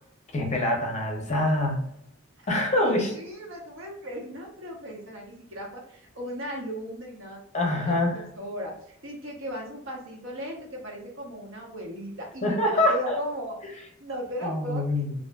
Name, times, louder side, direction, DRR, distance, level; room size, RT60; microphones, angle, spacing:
voice 1, 0.3-1.8 2.5-3.1 7.5-8.2 12.4-13.2 14.4-15.1, left 1 dB, 35° left, 0 dB, 0.6 m, -25 dB
voice 2, 2.7-7.4 7.7-13.6 14.0-14.8, equal, 70° right, -1 dB, 0.8 m, -36 dB
2.5 x 2.5 x 2.2 m, 0.73 s
head